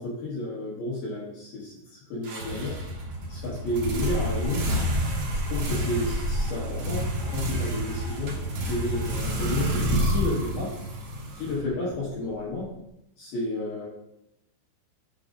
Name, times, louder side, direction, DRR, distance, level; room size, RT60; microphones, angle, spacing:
voice 1, 0.0-2.8 3.3-4.7 5.3-10.7 11.3-12.7 13.2-13.9, left 2 dB, 65° left, -7 dB, 3.3 m, -31 dB
sound 1, 2.2-12.0, equal, 75° right, 1.4 m, -28 dB
9.0 x 6.8 x 2.5 m, 0.82 s
omnidirectional pair, 5.4 m